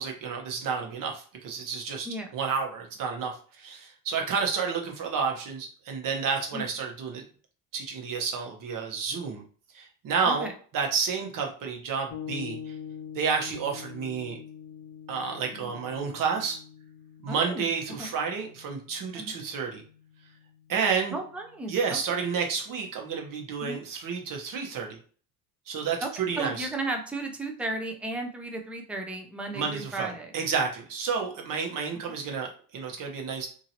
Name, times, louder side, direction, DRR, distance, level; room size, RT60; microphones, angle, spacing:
voice 1, 0.0-2.1 2.3-7.2 7.7-9.4 9.7-10.5 10.7-12.7 13.1-14.4 15.1-16.6 17.2-19.8 20.7-21.1 21.7-25.0 25.7-26.7 29.5-33.5, right 5 dB, 50° right, 2 dB, 1.0 m, -30 dB
sound 1, 12.1-21.8, left 8 dB, 45° left, 0.7 m, -45 dB
voice 2, 17.3-17.7 18.0-18.1 19.1-19.3 21.1-22.2 23.6-23.8 26.0-26.1 26.4-30.3 32.1-32.2, right 2 dB, 5° right, 3 dB, 0.5 m, -34 dB
2.8 x 2.7 x 2.8 m, 0.43 s
supercardioid pair, 100°, 41 cm